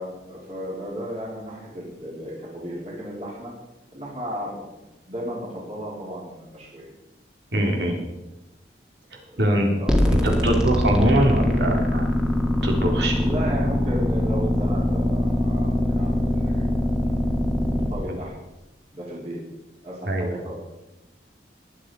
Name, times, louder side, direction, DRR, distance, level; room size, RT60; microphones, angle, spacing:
voice 1, 0.0-3.5 3.9-4.8 5.1-6.9 9.3-11.2 13.1-16.5 17.6-18.3 18.9-19.4 19.8-20.5, equal, 35° right, -5 dB, 3.8 m, -34 dB
voice 2, 7.5-8.0 9.4-9.7 10.4-12.1 12.6-13.2 18.1-18.2 20.1-20.3, right 1 dB, 75° right, 0 dB, 3.6 m, -22 dB
sound 1, 9.9-17.9, left 1 dB, 5° right, 1.7 m, -22 dB
22.0 x 8.2 x 4.8 m, 0.97 s
head